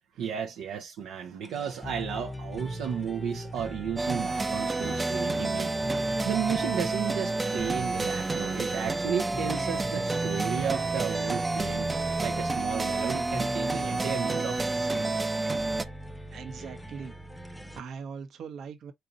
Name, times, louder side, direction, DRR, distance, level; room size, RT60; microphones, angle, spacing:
voice 1, 0.2-5.7 6.2-11.9 12.2-15.2, right 8 dB, 90° right, 0.9 m, -33 dB
sound 1, 1.4-17.8, equal, 5° left, 0.8 m, -40 dB
Funny background loop, 4.0-15.8, right 3 dB, 20° right, 0.6 m, -29 dB
voice 2, 16.3-17.2 17.5-18.9, right 6 dB, 70° right, 1.2 m, -41 dB
4.4 x 4.1 x 2.5 m
cardioid pair, 90°, 0 cm